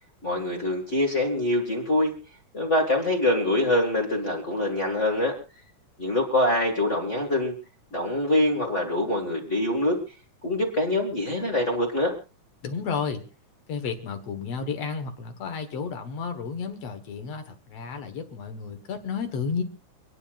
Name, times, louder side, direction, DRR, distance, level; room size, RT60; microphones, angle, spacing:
voice 1, 0.2-2.1 2.5-5.3 6.0-7.5 7.9-10.0 10.4-12.1, left 1 dB, 25° left, 1 dB, 2.0 m, -24 dB
voice 2, 12.6-13.2 13.7-19.6, left 5 dB, 60° left, 7 dB, 2.4 m, -32 dB
29.5 x 9.9 x 2.5 m, 0.32 s
omnidirectional pair, 3.4 m